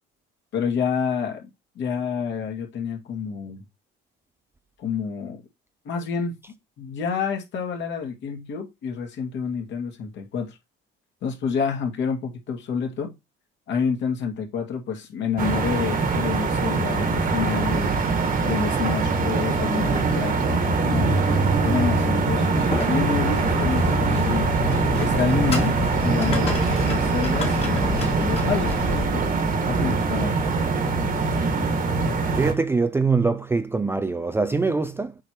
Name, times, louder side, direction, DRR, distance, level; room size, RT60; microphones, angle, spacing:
voice 1, 0.5-1.5 1.8-3.6 4.8-5.4 5.8-6.4 6.8-10.6 11.2-13.1 13.7-17.9 18.4-21.1 21.6-24.5 24.9-25.7 26.0-29.2 29.6-30.3, left 6 dB, 60° left, 2.4 m, -28 dB
sound 1, 15.4-32.5, right 4 dB, 45° right, 1.5 m, -23 dB
sound 2, 22.5-29.1, left 3 dB, 30° left, 1.8 m, -29 dB
voice 2, 32.3-35.1, right 4 dB, 10° right, 0.4 m, -23 dB
7.3 x 4.8 x 3.0 m
cardioid pair, 120°, 21 cm